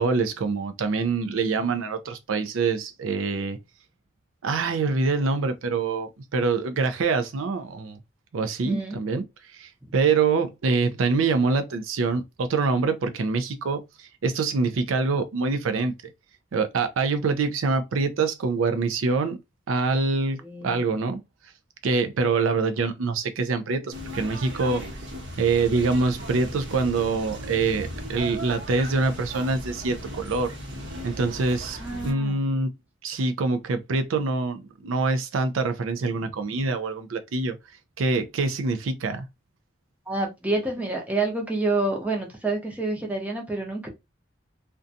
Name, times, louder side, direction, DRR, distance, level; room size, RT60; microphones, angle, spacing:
voice 1, 0.0-3.6 4.4-8.0 8.3-9.2 9.5-15.9 16.5-19.4 19.7-21.2 21.8-24.8 25.4-30.6 31.0-32.7 33.0-37.6 38.0-39.2, right 4 dB, 85° right, 0.4 m, -25 dB
voice 2, 8.6-9.0 20.4-20.8 31.8-32.4 36.2-36.3 40.1-43.9, right 2 dB, 10° right, 0.6 m, -28 dB
sound 1, 23.9-32.1, equal, 65° right, 0.8 m, -37 dB
2.5 x 2.2 x 2.6 m
head